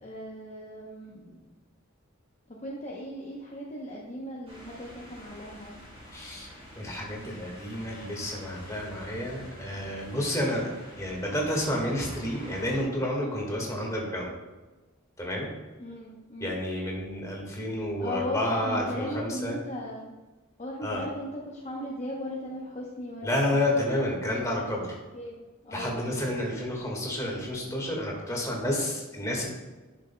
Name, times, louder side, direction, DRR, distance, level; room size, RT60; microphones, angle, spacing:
voice 1, 0.0-1.5 2.5-5.7 15.8-16.6 18.0-20.2 20.6-23.8 25.1-26.2, left 1 dB, 35° left, -3 dB, 0.8 m, -37 dB
sound 1, 4.5-12.8, equal, 30° right, 2.3 m, -47 dB
voice 2, 6.1-6.5 6.7-10.7 11.0-14.3 15.2-15.5 16.4-19.6 20.8-21.0 23.2-25.0 25.7-29.5, left 1 dB, 15° left, -2 dB, 1.7 m, -30 dB
11.0 x 6.2 x 2.2 m, 1.2 s
head